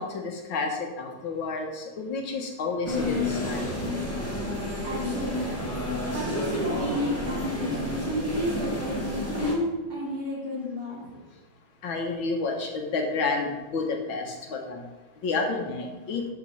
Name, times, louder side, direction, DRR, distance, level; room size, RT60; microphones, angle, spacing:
voice 1, 0.0-3.7 11.8-14.8 15.2-16.3, left 3 dB, 75° left, 2 dB, 2.0 m, -30 dB
sound 1, 2.9-9.5, left 1 dB, 5° left, 1.9 m, -30 dB
voice 2, 4.8-5.8 6.1-11.2, equal, 50° right, -6 dB, 3.9 m, -31 dB
12.0 x 4.4 x 5.6 m, 1.1 s
omnidirectional pair, 2.2 m